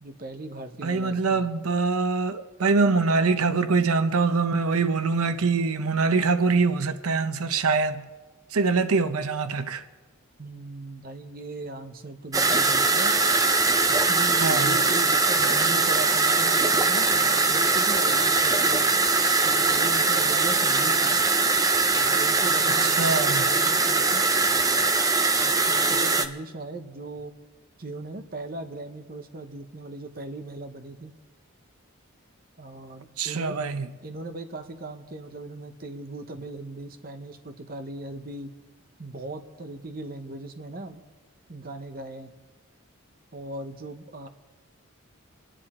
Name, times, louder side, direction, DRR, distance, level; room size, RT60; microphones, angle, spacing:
voice 1, 0.0-1.5 10.4-13.2 13.9-21.2 21.9-24.9 25.4-27.3 27.8-31.2 32.6-33.6 34.0-38.5 39.0-41.0 41.5-42.3 43.3-44.3, right 2 dB, 40° right, 0.9 m, -38 dB
voice 2, 0.8-8.1 8.5-9.8 14.3-14.7 22.8-23.5 33.2-33.9, right 4 dB, 90° right, 0.8 m, -24 dB
sound 1, 12.3-26.3, right 3 dB, 15° right, 0.6 m, -22 dB
27.0 x 10.0 x 4.3 m
head